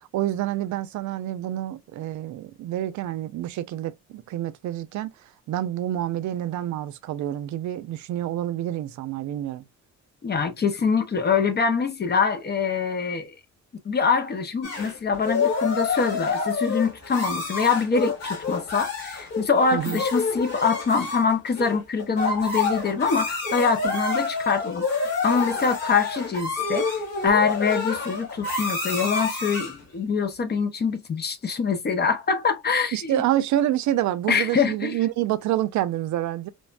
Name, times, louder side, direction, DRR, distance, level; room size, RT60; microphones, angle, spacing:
voice 1, 0.0-5.1 5.5-9.6 19.7-20.0 32.9-36.5, right 13 dB, 70° right, 0.4 m, -27 dB
voice 2, 10.2-13.3 13.8-26.9 27.2-33.2 34.3-35.0, left 5 dB, 35° left, 0.6 m, -24 dB
sound 1, 14.6-29.8, left 4 dB, 55° left, 1.6 m, -28 dB
3.3 x 2.1 x 2.4 m
cardioid pair, 90°, 30 cm